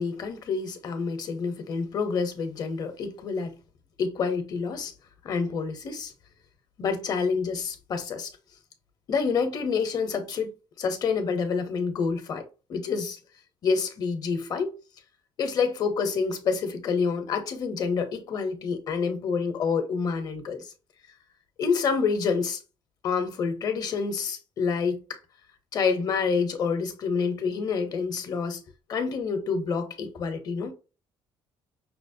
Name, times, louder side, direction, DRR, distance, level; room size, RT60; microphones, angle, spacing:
voice 1, 0.0-3.5 4.0-4.9 5.2-6.1 6.8-8.3 9.1-12.4 12.7-13.2 13.6-14.7 15.4-20.7 21.6-22.6 23.0-25.0 25.7-28.6 28.9-30.7, left 5 dB, 45° left, 0.8 m, -28 dB
5.7 x 2.0 x 2.6 m
cardioid pair, 145°, 9 cm